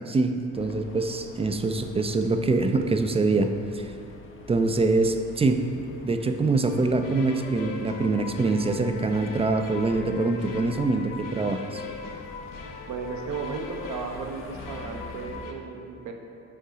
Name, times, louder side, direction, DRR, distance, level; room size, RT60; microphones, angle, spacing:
voice 1, 0.1-3.9 4.5-5.6 6.0-11.8, right 3 dB, 20° right, 7 dB, 0.3 m, -24 dB
sound 1, 0.5-15.5, left 3 dB, 40° left, 0.6 m, -47 dB
sound 2, 6.7-15.5, left 5 dB, 75° left, 0.8 m, -40 dB
voice 2, 12.9-16.1, right 4 dB, 65° right, 3 dB, 0.8 m, -35 dB
5.5 x 3.8 x 4.9 m, 2.6 s
cardioid pair, 80°, 32 cm